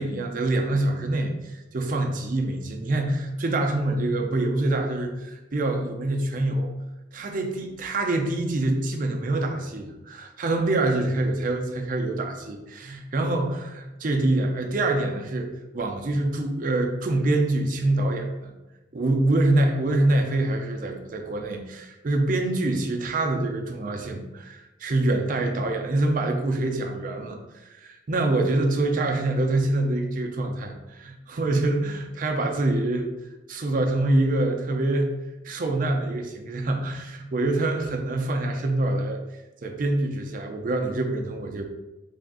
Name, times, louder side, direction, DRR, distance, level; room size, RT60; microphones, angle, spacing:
voice 1, 0.0-1.3 1.7-6.7 7.1-18.5 18.9-33.1 33.5-35.1 35.4-39.2 39.6-41.6, right 2 dB, 45° right, 3 dB, 0.4 m, -25 dB
3.3 x 2.4 x 3.7 m, 1.0 s
head